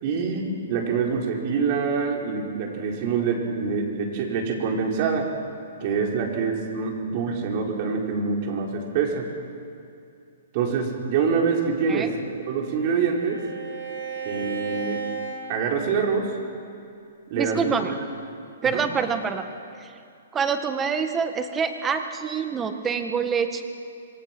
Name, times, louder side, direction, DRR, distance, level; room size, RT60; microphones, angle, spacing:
voice 1, 0.0-5.3 5.8-9.3 10.5-12.1 12.5-13.4 14.2-15.0 15.5-16.3 17.3-17.6 17.9-18.0 18.6-18.8, right 5 dB, 40° right, 0 dB, 4.8 m, -25 dB
Bowed string instrument, 12.0-16.3, right 6 dB, 65° right, 6.1 m, -35 dB
voice 2, 17.3-17.9 18.6-19.4 19.8-19.9 20.3-23.6, right 6 dB, 15° right, 7 dB, 1.7 m, -26 dB
26.5 x 23.5 x 6.2 m, 2.5 s
hypercardioid pair, 145°, 0 cm